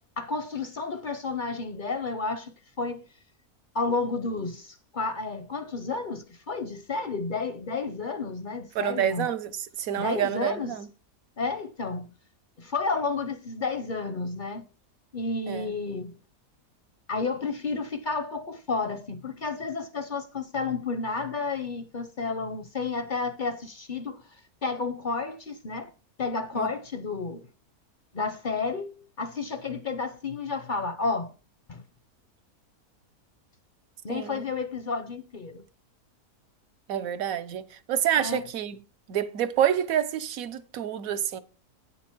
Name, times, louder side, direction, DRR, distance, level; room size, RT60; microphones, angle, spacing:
voice 1, 0.0-3.1 3.7-9.3 10.0-10.8 11.4-12.1 12.6-14.7 15.1-16.1 17.1-25.9 26.2-27.5 28.1-31.3 31.7-31.8 34.0-35.6 38.2-38.5, left 4 dB, 50° left, 0.6 m, -31 dB
voice 2, 8.7-9.5 9.8-10.9 15.5-15.7 26.6-26.7 34.1-34.4 36.9-38.8 39.1-41.4, right 10 dB, 70° right, 1.2 m, -28 dB
9.2 x 6.8 x 4.4 m
omnidirectional pair, 1.6 m